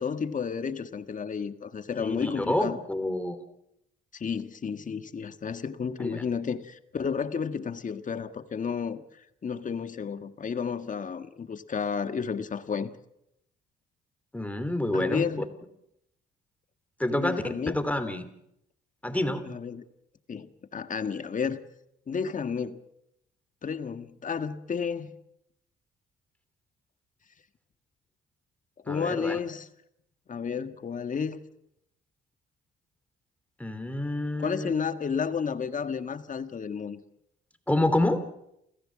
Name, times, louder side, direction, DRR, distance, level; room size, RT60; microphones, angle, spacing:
voice 1, 0.0-2.8 4.1-9.0 9.4-12.9 14.9-15.5 17.1-17.8 19.5-19.8 20.3-21.6 22.1-22.8 23.6-25.1 28.8-29.7 30.3-31.4 34.4-37.0, left 6 dB, 40° left, 9 dB, 1.7 m, -32 dB
voice 2, 2.0-3.4 6.0-6.2 14.3-15.2 17.0-18.2 19.0-19.4 28.9-29.4 33.6-34.7 37.7-38.2, left 1 dB, 5° left, 9 dB, 3.2 m, -28 dB
29.0 x 15.5 x 7.6 m, 0.79 s
cardioid pair, 90°, 20 cm